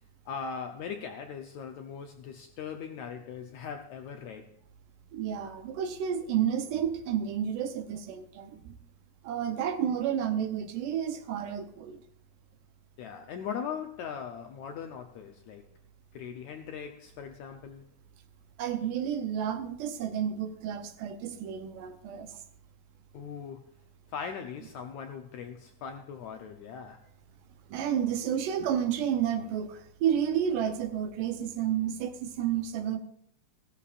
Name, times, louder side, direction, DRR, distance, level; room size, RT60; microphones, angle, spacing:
voice 1, 0.3-4.5 13.0-15.7 16.1-17.9 23.1-23.7 24.1-27.1, left 7 dB, 75° left, 1.7 m, -40 dB
voice 2, 5.1-8.7 9.2-12.0 18.6-22.3 27.7-33.0, right 9 dB, 75° right, 2.3 m, -31 dB
16.5 x 14.0 x 2.5 m
omnidirectional pair, 4.1 m